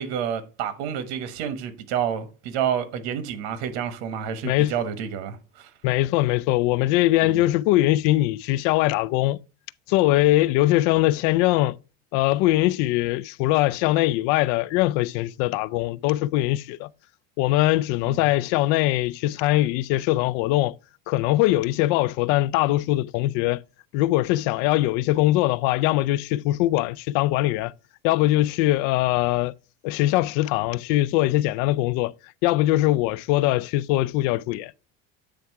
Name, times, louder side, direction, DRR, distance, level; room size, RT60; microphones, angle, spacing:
voice 1, 0.0-5.7 7.2-7.4 18.1-18.2, right 8 dB, 85° right, 1.3 m, -29 dB
voice 2, 5.8-9.4 9.9-11.8 12.1-16.9 17.4-20.7 21.1-23.6 23.9-27.7 28.0-29.5 29.8-32.1 32.4-34.7, left 16 dB, 65° left, 0.4 m, -22 dB
8.6 x 3.4 x 4.6 m
cardioid pair, 145°, 32 cm